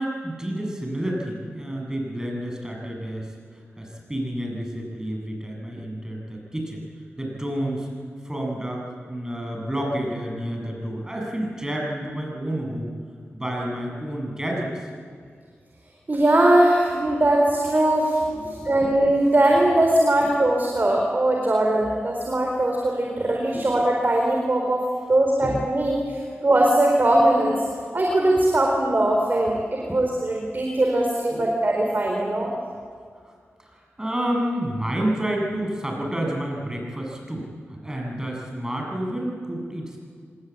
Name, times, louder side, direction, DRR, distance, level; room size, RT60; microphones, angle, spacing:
voice 1, 0.0-6.8 7.2-7.9 8.2-12.9 13.3-14.9 18.3-19.0 23.5-23.7 26.3-26.4 29.8-30.0 31.3-31.5 33.6-40.0, right 1 dB, 15° right, 0 dB, 7.9 m, -30 dB
voice 2, 16.1-18.2 18.5-24.8 25.1-27.6 27.9-32.5, right 1 dB, 40° right, 0 dB, 4.2 m, -20 dB
26.0 x 20.5 x 8.7 m, 2.1 s
cardioid pair, 60°, 5 cm